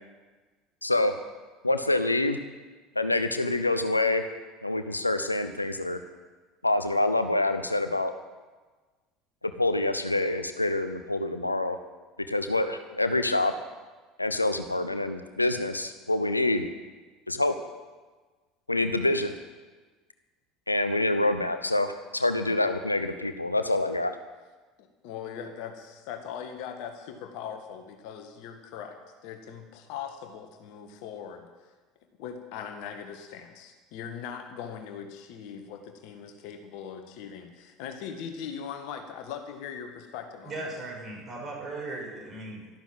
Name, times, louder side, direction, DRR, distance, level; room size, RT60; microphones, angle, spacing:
voice 1, 0.8-1.1 1.6-2.4 3.0-4.2 4.6-6.0 6.6-8.1 9.4-11.8 12.3-13.5 14.2-16.7 17.3-17.5 18.7-19.4 20.7-24.2, left 2 dB, 90° left, 9 dB, 0.8 m, -26 dB
voice 2, 24.8-31.5 32.2-40.7, left 7 dB, 55° left, 5 dB, 1.6 m, -40 dB
voice 3, 40.4-42.8, right 2 dB, 30° right, -1 dB, 6.2 m, -38 dB
12.5 x 12.0 x 7.6 m, 1.3 s
figure-of-eight pair, 70°, 0 cm